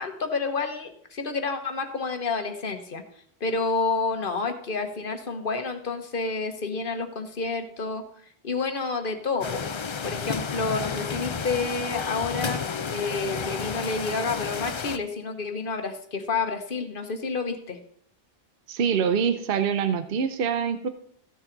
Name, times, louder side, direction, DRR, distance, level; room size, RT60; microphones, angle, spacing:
voice 1, 0.0-3.0 3.4-8.0 8.4-9.6 10.0-17.8, left 4 dB, 60° left, 6 dB, 1.3 m, -29 dB
sound 1, 9.4-15.0, left 5 dB, 40° left, 0.4 m, -31 dB
voice 2, 18.7-20.9, right 7 dB, 65° right, 9 dB, 0.9 m, -25 dB
14.5 x 7.2 x 3.9 m, 0.66 s
omnidirectional pair, 1.0 m